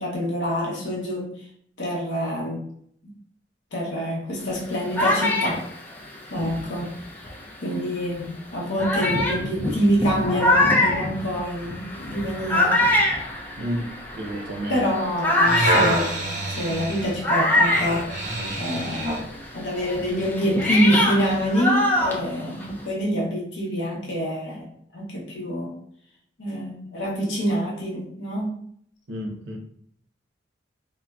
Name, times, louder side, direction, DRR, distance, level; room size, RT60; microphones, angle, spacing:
voice 1, 0.0-1.4 1.8-2.6 3.7-5.6 6.3-7.3 7.6-12.8 14.7-18.1 18.5-19.1 19.5-25.7 26.4-28.6, equal, 80° left, -3 dB, 0.7 m, -26 dB
sound 1, 4.5-7.5 8.2-8.3 8.8-18.8 19.1-22.9, left 1 dB, 10° left, 0.4 m, -24 dB
voice 2, 13.6-14.9 29.1-29.6, right 1 dB, 90° right, 3 dB, 0.6 m, -31 dB
sound 2, 15.2-19.3 19.9-20.0, right 1 dB, 45° right, 0.7 m, -26 dB
3.7 x 2.1 x 2.2 m, 0.66 s
head